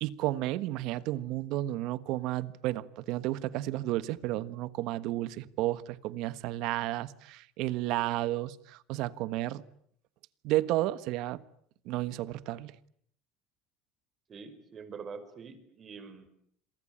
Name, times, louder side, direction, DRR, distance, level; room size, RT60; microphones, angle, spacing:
voice 1, 0.0-9.6 10.4-11.4 11.8-12.7, right 16 dB, 70° right, 1.3 m, -32 dB
voice 2, 14.3-16.3, right 5 dB, 35° right, 5.1 m, -45 dB
27.5 x 23.0 x 8.8 m
supercardioid pair, 115°, 0 cm